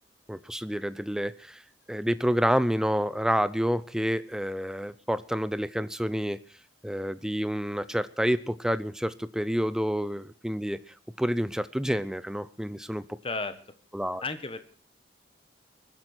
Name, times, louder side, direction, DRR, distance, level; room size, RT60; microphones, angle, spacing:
voice 1, 0.3-1.6 1.9-6.4 6.8-10.8 11.2-13.0 13.9-14.2, equal, 5° right, 14 dB, 0.6 m, -28 dB
voice 2, 13.2-13.6 14.2-14.6, left 3 dB, 30° left, 11 dB, 1.4 m, -33 dB
23.0 x 10.5 x 4.5 m, 0.43 s
head